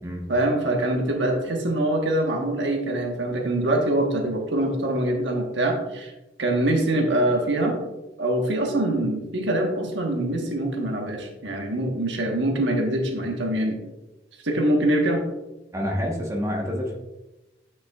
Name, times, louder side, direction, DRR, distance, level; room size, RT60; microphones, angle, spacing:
voice 1, 0.3-6.1 6.4-7.8 8.2-13.8 14.4-15.2, right 1 dB, 75° right, 2 dB, 1.2 m, -24 dB
voice 2, 15.7-17.0, equal, 15° right, -1 dB, 1.1 m, -27 dB
9.4 x 5.8 x 2.4 m, 1.0 s
head